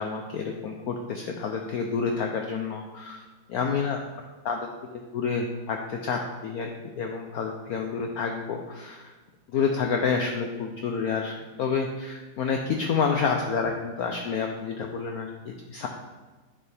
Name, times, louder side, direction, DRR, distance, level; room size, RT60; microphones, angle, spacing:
voice 1, 0.0-3.2 3.5-4.0 4.4-6.7 7.0-9.1 9.5-15.9, left 5 dB, 65° left, 3 dB, 1.0 m, -29 dB
8.9 x 6.9 x 3.4 m, 1.3 s
omnidirectional pair, 2.0 m